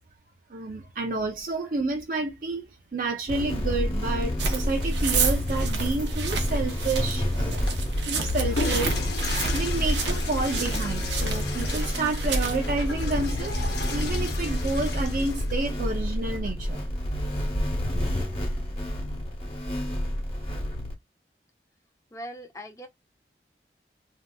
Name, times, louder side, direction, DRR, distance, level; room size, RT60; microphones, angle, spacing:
voice 1, 0.5-7.6 8.0-8.9 9.5-13.6 13.9-16.8, right 3 dB, 50° right, 0.4 m, -30 dB
sound 1, 3.3-20.9, left 1 dB, 35° left, 1.1 m, -28 dB
sound 2, 4.4-12.6, right 6 dB, 85° right, 0.7 m, -32 dB
Water / Toilet flush, 7.5-15.9, left 3 dB, 75° left, 1.0 m, -36 dB
voice 2, 22.1-22.9, equal, 20° left, 0.6 m, -40 dB
3.3 x 2.7 x 2.2 m
head